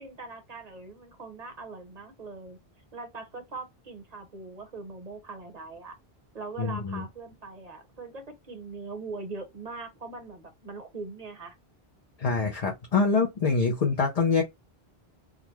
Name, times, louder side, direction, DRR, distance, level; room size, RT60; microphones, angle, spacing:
voice 1, 0.0-2.6 2.9-6.0 6.3-11.5, right 3 dB, 40° right, 1.0 m, -41 dB
voice 2, 6.6-7.0 12.2-14.4, left 4 dB, 45° left, 0.7 m, -25 dB
3.7 x 2.1 x 3.0 m
omnidirectional pair, 1.1 m